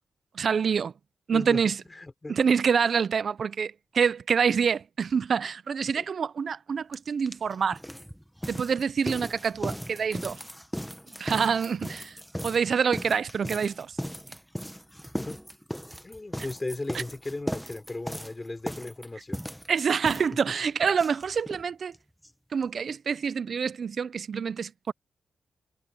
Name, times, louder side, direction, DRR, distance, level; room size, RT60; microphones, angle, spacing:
voice 1, 0.3-0.9 1.3-1.7 2.3-7.8 8.5-10.4 11.2-12.2 12.4-14.0 19.7-21.9 22.5-24.9, right 6 dB, 55° right, 0.4 m, -26 dB
voice 2, 1.3-2.4 5.9-6.0 15.1-15.4 16.0-19.4 20.5-20.6, left 2 dB, 20° left, 3.6 m, -36 dB
sound 1, 6.9-7.0 7.3-21.7 21.9-22.0 22.2-22.3 22.6-22.7, equal, ahead, 1.0 m, -37 dB
wide cardioid pair, 130°, 0 cm